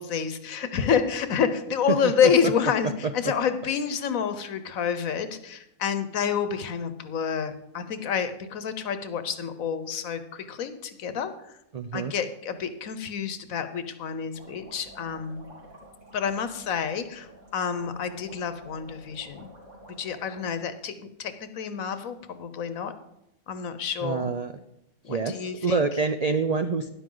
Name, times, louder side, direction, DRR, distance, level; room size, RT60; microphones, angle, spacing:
voice 1, 0.0-11.3 11.9-15.4 16.1-19.5 20.0-22.9 23.5-24.3 25.1-25.8, left 7 dB, 75° left, 11 dB, 1.3 m, -28 dB
voice 2, 11.7-12.1 24.0-24.6 25.1-26.9, right 4 dB, 85° right, 8 dB, 0.3 m, -27 dB
sound 1, 14.3-20.5, equal, 60° right, 4.2 m, -50 dB
12.5 x 10.5 x 3.9 m, 0.84 s
omnidirectional pair, 1.5 m